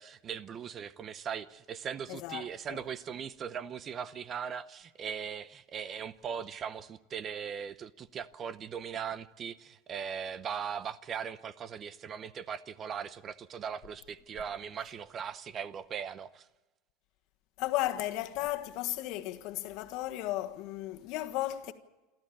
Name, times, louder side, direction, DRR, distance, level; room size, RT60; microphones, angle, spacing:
voice 1, 0.0-16.5, right 7 dB, 30° right, 0.7 m, -39 dB
voice 2, 2.1-2.8 17.6-21.7, left 15 dB, 55° left, 1.5 m, -35 dB
28.0 x 13.5 x 8.6 m
supercardioid pair, 150°, 0 cm